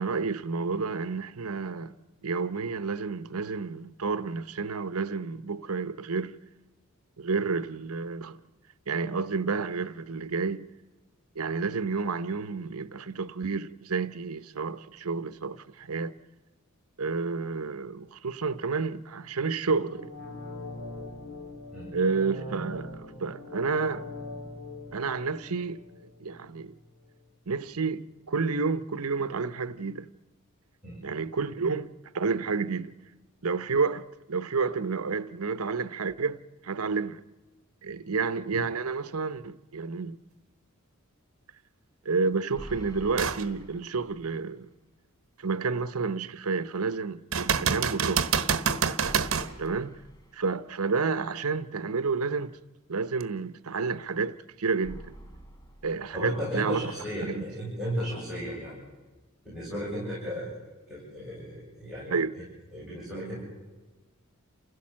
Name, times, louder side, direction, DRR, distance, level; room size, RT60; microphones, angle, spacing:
voice 1, 0.0-1.9 2.2-6.3 7.2-8.4 8.9-10.7 11.4-16.1 17.0-20.1 21.9-24.0 24.9-25.8 26.2-26.7 27.5-30.1 31.0-32.9 33.4-37.2 37.8-40.2 42.0-44.7 45.4-48.3 49.6-49.9 50.3-52.6 52.9-55.1 55.8-56.8 57.2-57.4 62.1-62.3, right 4 dB, 85° right, 0.8 m, -30 dB
sound 1, 19.8-26.7 27.0-27.1, left 2 dB, 70° left, 4.8 m, -42 dB
sound 2, 42.5-44.6 44.9-45.0 49.0-51.0 54.8-56.8, right 1 dB, 15° left, 1.8 m, -47 dB
sound 3, 43.2-43.5 44.0-44.1 47.3-49.5 53.2-53.3, right 6 dB, 65° right, 1.2 m, -26 dB
voice 2, 56.1-58.7 59.4-60.6 60.9-62.4 62.7-63.4, equal, ahead, 7.8 m, -35 dB
29.5 x 16.0 x 7.5 m
head